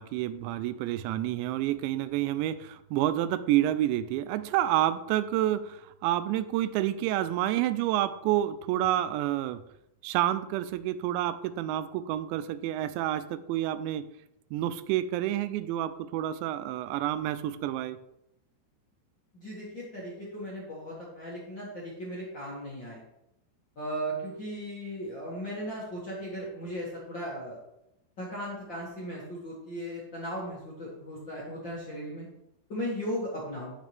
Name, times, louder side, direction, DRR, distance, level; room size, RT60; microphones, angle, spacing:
voice 1, 0.0-9.6 10.0-14.1 14.5-18.0, right 13 dB, 85° right, 13 dB, 2.6 m, -29 dB
voice 2, 19.3-23.0 23.7-27.6 28.2-32.3 32.7-33.7, equal, 50° left, -7 dB, 1.4 m, -37 dB
9.2 x 9.2 x 3.4 m, 0.83 s
omnidirectional pair, 5.6 m